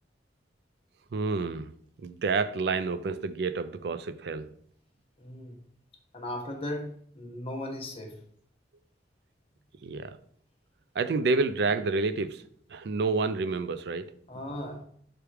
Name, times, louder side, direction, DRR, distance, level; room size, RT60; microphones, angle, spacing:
voice 1, 1.1-1.7 2.0-4.5 9.8-10.2 10.9-12.4 12.7-14.1, right 4 dB, 65° right, 0.4 m, -29 dB
voice 2, 5.2-5.6 6.1-8.1 14.3-14.8, left 1 dB, 30° left, 1.0 m, -37 dB
5.8 x 3.4 x 4.7 m
head